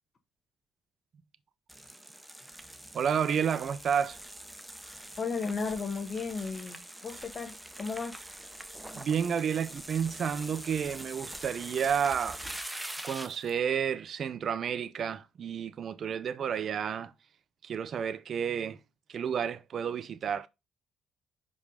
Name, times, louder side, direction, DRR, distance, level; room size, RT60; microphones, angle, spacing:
sound 1, 1.7-13.5, right 1 dB, 5° right, 1.0 m, -44 dB
voice 1, 2.9-4.2 8.9-12.4 13.0-17.1 17.6-18.8 19.1-20.5, right 7 dB, 60° right, 0.6 m, -31 dB
voice 2, 5.2-8.2, left 4 dB, 45° left, 1.4 m, -35 dB
5.3 x 4.9 x 5.3 m
cardioid pair, 90°, 0 cm